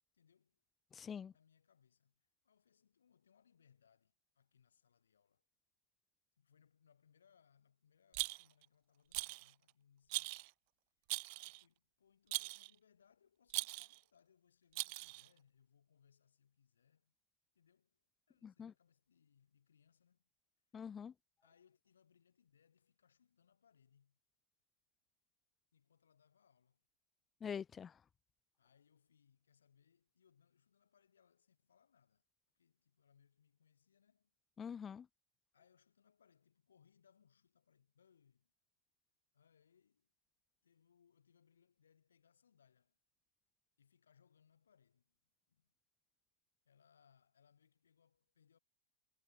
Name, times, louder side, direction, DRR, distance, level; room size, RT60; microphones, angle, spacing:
voice 1, 0.1-0.6 1.3-5.5 6.4-10.5 11.1-17.1 17.5-20.3 21.4-24.2 25.7-26.8 28.6-32.2 32.5-34.3 35.5-38.5 39.3-40.1 40.6-43.0 43.8-45.2 45.5-45.7 46.6-48.6, left 7 dB, 70° left, 5.1 m, -73 dB
voice 2, 0.9-1.3 18.4-18.7 20.7-21.1 27.4-27.9 34.6-35.1, left 7 dB, 20° left, 0.4 m, -45 dB
Rattle, 8.1-8.6 9.1-9.5 10.1-10.5 11.1-11.6 12.3-12.7 13.5-14.0 14.7-15.3, right 30 dB, 45° right, 0.4 m, -41 dB
figure-of-eight pair, 90°, 0 cm